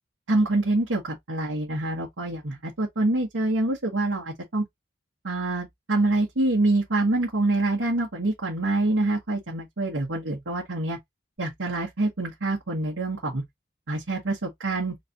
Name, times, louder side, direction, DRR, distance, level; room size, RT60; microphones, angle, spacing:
voice 1, 0.3-4.6 5.2-11.0 11.4-13.4 13.9-14.9, right 2 dB, 85° right, 1.3 m, -26 dB
4.0 x 3.3 x 2.6 m
head